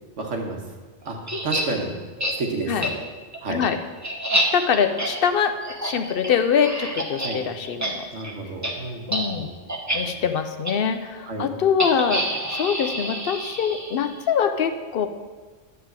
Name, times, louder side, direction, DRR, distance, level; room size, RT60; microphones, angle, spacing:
voice 1, 0.2-0.6 1.0-1.2 1.4-1.9 2.4-3.0 3.4-3.6 7.2-7.4 8.1-9.5 9.9-10.2 11.3-11.5, right 3 dB, 90° right, 1 dB, 1.5 m, -30 dB
sound 1, 1.3-1.6 2.2-2.3 2.8-2.9 3.3-7.3 7.6-8.3 8.6-8.7 9.1-9.3 9.7-10.0 10.6-10.7 11.8-14.1, right 1 dB, 15° right, 0.8 m, -27 dB
voice 2, 3.5-3.8 4.5-5.5 5.8-8.0 9.1-9.5 9.9-12.2 12.5-15.1, left 7 dB, 60° left, 8 dB, 0.7 m, -23 dB
9.9 x 3.8 x 7.3 m, 1.4 s
omnidirectional pair, 1.2 m